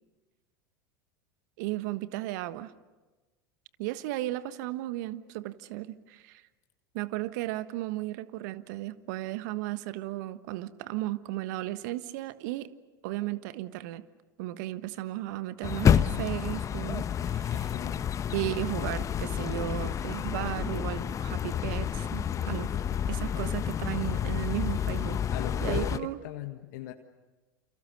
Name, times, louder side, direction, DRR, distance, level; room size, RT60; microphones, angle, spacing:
voice 1, 1.6-2.7 3.8-6.4 6.9-12.7 13.0-14.0 14.4-17.7 18.3-22.7 23.1-25.2 25.6-26.2, right 16 dB, 60° right, 13 dB, 1.3 m, -35 dB
sound 1, 15.6-26.0, left 8 dB, 30° left, 1.0 m, -29 dB
voice 2, 17.5-18.0 23.2-23.8 25.3-26.9, left 13 dB, 60° left, 6 dB, 1.6 m, -40 dB
28.5 x 28.5 x 6.6 m, 1.2 s
figure-of-eight pair, 85°, 11 cm